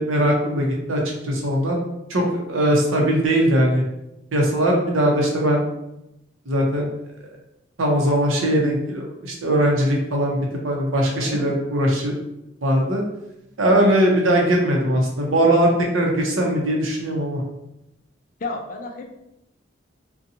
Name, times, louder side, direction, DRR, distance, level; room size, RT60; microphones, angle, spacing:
voice 1, 0.0-1.8 2.1-3.8 4.3-5.7 6.5-6.9 7.8-10.4 10.6-12.1 12.6-13.0 13.6-17.4, right 1 dB, 85° right, -1 dB, 0.7 m, -20 dB
voice 2, 18.4-19.3, left 3 dB, 40° left, 2 dB, 0.3 m, -32 dB
2.6 x 2.2 x 2.7 m, 0.87 s
head